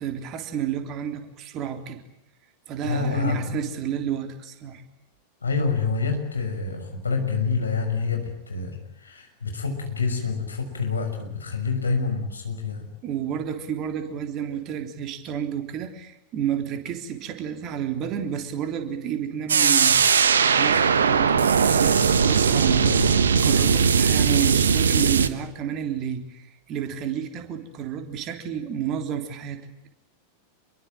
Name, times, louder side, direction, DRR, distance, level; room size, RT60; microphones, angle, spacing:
voice 1, 0.0-2.0 2.7-4.8 13.0-20.0 20.6-29.6, right 9 dB, 35° right, 7 dB, 3.5 m, -31 dB
voice 2, 2.8-3.6 5.4-12.9 22.8-23.1, left 4 dB, 75° left, 5 dB, 6.1 m, -27 dB
sound 1, 19.5-25.3, right 6 dB, 70° right, 1.4 m, -19 dB
27.5 x 22.5 x 9.0 m, 0.77 s
figure-of-eight pair, 90°, 0 cm